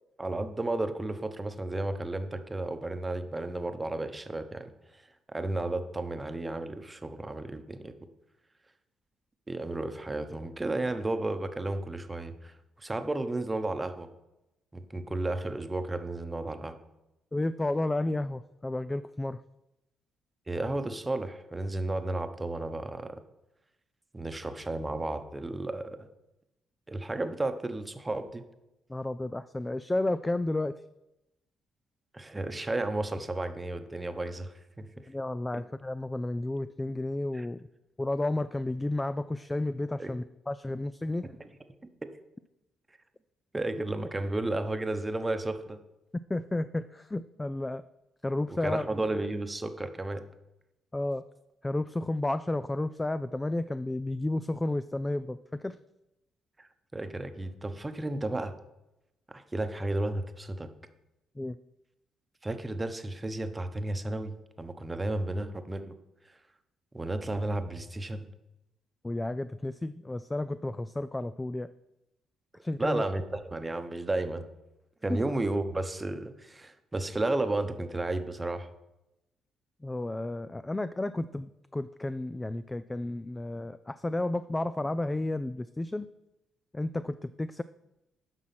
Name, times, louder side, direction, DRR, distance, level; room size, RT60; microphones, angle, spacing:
voice 1, 0.2-5.0 5.3-7.9 9.5-14.1 14.7-16.8 20.5-23.2 24.1-26.0 26.9-28.4 32.1-35.0 35.5-35.6 37.3-37.5 40.0-40.1 41.2-41.4 43.5-45.8 48.5-50.2 56.6-58.5 59.3-60.7 62.4-65.9 66.9-68.3 72.8-74.5 75.0-78.7, right 2 dB, 20° right, 8 dB, 1.0 m, -33 dB
voice 2, 17.3-19.4 28.9-30.8 35.1-37.6 38.0-41.3 46.3-47.8 48.2-48.8 50.9-51.2 51.6-55.4 55.6-55.8 61.4-61.6 69.0-71.7 72.6-73.0 75.1-75.2 79.8-86.1 86.7-87.6, left 2 dB, 15° left, 13 dB, 0.3 m, -32 dB
9.7 x 6.2 x 5.9 m, 0.92 s
cardioid pair, 90°, 0 cm